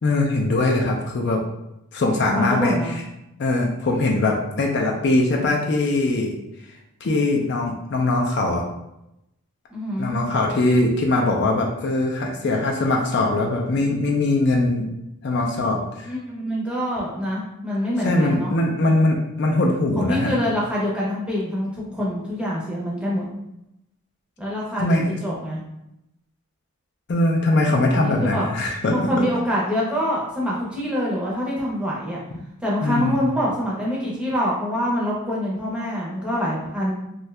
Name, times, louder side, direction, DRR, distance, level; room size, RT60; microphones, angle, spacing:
voice 1, 0.0-1.4 1.9-2.8 3.4-6.3 7.0-8.6 10.0-14.8 15.2-16.1 18.0-20.3 24.7-25.2 27.1-29.3 32.8-33.3, left 2 dB, 50° left, 1 dB, 0.4 m, -21 dB
voice 2, 2.1-3.0 9.7-10.3 16.0-18.5 20.0-23.2 24.4-25.6 27.9-28.5 28.9-32.2 32.6-36.9, equal, 5° right, -5 dB, 0.6 m, -25 dB
2.7 x 2.3 x 3.1 m, 0.86 s
head